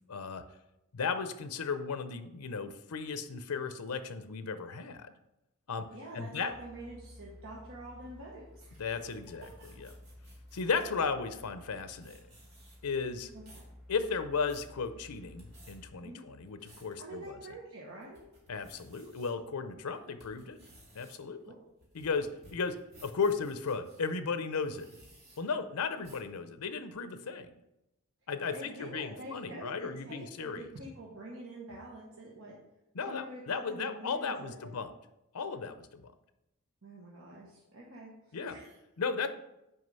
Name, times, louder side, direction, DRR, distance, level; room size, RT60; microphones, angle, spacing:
voice 1, 0.1-0.4 0.9-5.1 5.7-5.9 6.1-6.5 8.8-9.5 9.8-9.9 10.5-12.2 12.8-13.3 13.9-17.4 18.5-20.6 20.9-21.4 21.9-22.8 23.0-24.9 25.4-27.5 28.3-30.7 32.9-34.9 35.3-36.1 38.3-38.6 39.0-39.3, left 5 dB, 90° left, 10 dB, 0.6 m, -35 dB
voice 2, 5.9-8.8 9.6-9.7 13.3-13.6 16.0-16.2 17.0-18.2 21.5-21.6 28.5-32.6 33.1-34.8 36.8-38.7, right 1 dB, 65° right, -4 dB, 1.2 m, -46 dB
sound 1, 6.5-15.9, left 1 dB, ahead, 0.7 m, -54 dB
sound 2, 8.6-11.0 11.6-11.7 11.9-12.9 13.3-13.7 14.2-14.7 15.2-15.7 16.3-16.9 17.4-17.5 18.0-19.3 19.8-24.0 24.6-25.4 26.0-26.3, right 1 dB, 45° right, 2.2 m, -58 dB
6.4 x 4.7 x 5.4 m, 0.91 s
head